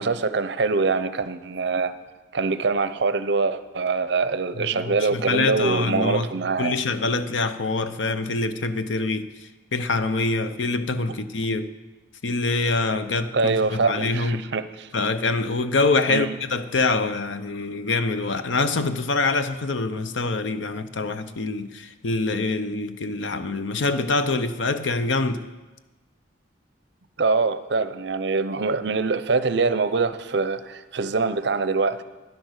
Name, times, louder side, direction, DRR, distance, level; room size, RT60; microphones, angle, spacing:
voice 1, 0.0-1.9 2.3-6.8 13.3-14.9 16.1-16.4 27.2-32.0, right 4 dB, 55° right, 0.6 m, -24 dB
voice 2, 4.6-6.3 6.6-11.7 12.2-14.5 14.9-25.5, left 3 dB, 70° left, 0.7 m, -25 dB
11.0 x 10.5 x 6.4 m
head